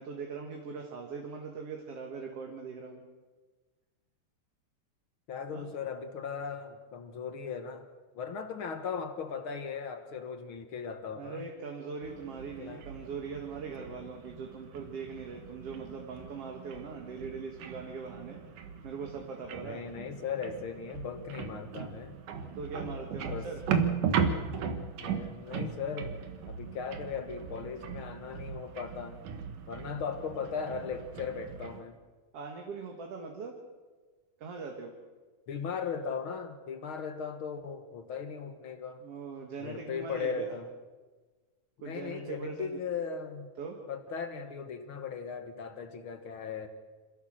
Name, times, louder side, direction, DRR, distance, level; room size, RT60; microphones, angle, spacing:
voice 1, 0.0-3.0 5.5-5.7 11.1-18.4 18.8-19.8 22.6-23.6 32.3-33.5 34.4-34.9 39.0-40.5 41.8-42.8 43.6-43.8, right 5 dB, 50° right, 1 dB, 2.6 m, -41 dB
voice 2, 5.3-7.8 8.1-11.5 12.6-12.8 19.6-22.2 23.3-23.5 25.0-29.2 29.7-32.0 35.5-39.0 39.6-40.7 41.8-43.5 43.9-46.7, left 6 dB, 55° left, 8 dB, 1.6 m, -38 dB
sound 1, 12.0-31.8, right 6 dB, 75° right, 2.8 m, -37 dB
26.5 x 16.0 x 6.6 m, 1.3 s
omnidirectional pair, 3.7 m